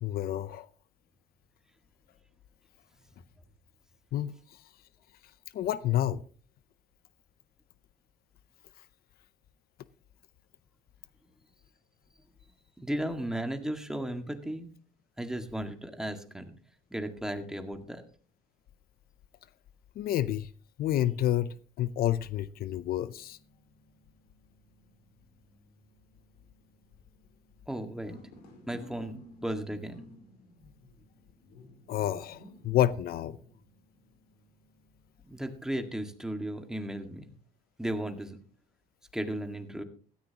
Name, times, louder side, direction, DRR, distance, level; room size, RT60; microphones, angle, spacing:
voice 1, 0.0-0.7 4.1-4.6 5.5-6.2 20.0-20.5 20.8-23.4 31.9-33.4, left 12 dB, 65° left, 0.6 m, -29 dB
voice 2, 12.8-14.8 15.2-16.5 16.9-18.0 27.7-28.2 28.7-30.0 35.2-37.3 37.8-38.4 39.1-39.8, right 1 dB, 5° right, 1.8 m, -35 dB
sound 1, 22.4-35.4, equal, 85° left, 4.5 m, -56 dB
16.0 x 14.0 x 2.9 m
cardioid pair, 110°, 17 cm